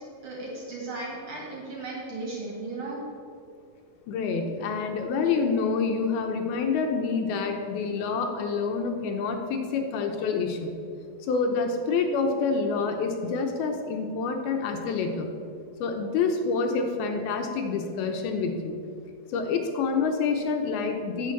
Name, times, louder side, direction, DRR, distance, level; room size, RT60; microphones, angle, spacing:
voice 1, 0.2-3.0, right 2 dB, 45° right, -3 dB, 2.8 m, -36 dB
voice 2, 4.1-10.7 11.2-15.3 15.8-18.8 19.3-21.3, left 4 dB, 75° left, 4 dB, 2.7 m, -27 dB
9.1 x 7.9 x 7.2 m, 2.4 s
omnidirectional pair, 4.6 m